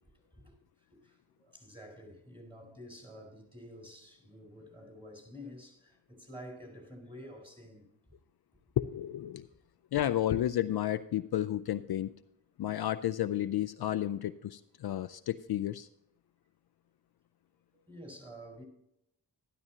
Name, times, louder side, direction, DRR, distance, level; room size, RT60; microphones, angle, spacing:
voice 1, 0.8-7.9 17.9-18.6, equal, 10° right, 4.3 m, -49 dB
voice 2, 8.8-9.5 9.9-12.2 12.6-15.9, left 12 dB, 60° left, 0.5 m, -32 dB
12.5 x 12.0 x 2.8 m
cardioid pair, 90°, 44 cm